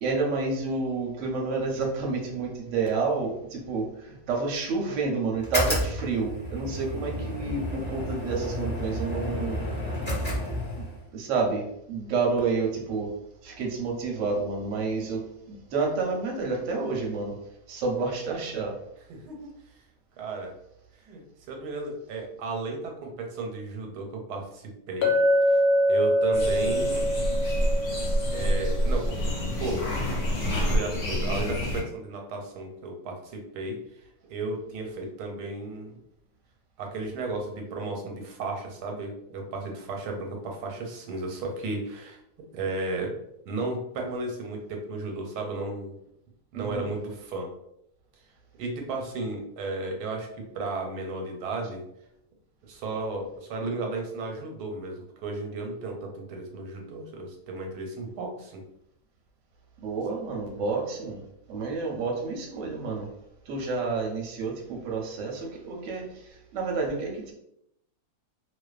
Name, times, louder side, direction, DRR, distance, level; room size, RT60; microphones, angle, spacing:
voice 1, 0.0-9.6 10.8-13.1 13.4-17.4 17.7-18.8 46.5-46.9 59.8-61.2 61.5-63.1 63.5-67.3, right 4 dB, 65° right, 0 dB, 0.8 m, -29 dB
sound 1, 5.4-11.0, equal, 10° left, 0.5 m, -31 dB
voice 2, 19.1-19.5 20.2-20.5 21.0-25.1 25.5-27.1 28.3-29.8 30.4-33.8 34.3-36.0 36.8-42.2 42.5-43.1 43.4-45.9 46.5-47.5 48.6-50.3 50.5-51.8 52.6-58.6, right 3 dB, 90° right, 2 dB, 1.1 m, -34 dB
Chink clink, 25.0-29.2, equal, 80° left, 1.2 m, -24 dB
sound 2, 26.3-31.8, equal, 60° left, 0.9 m, -27 dB
2.5 x 2.2 x 2.3 m, 0.78 s
omnidirectional pair, 1.7 m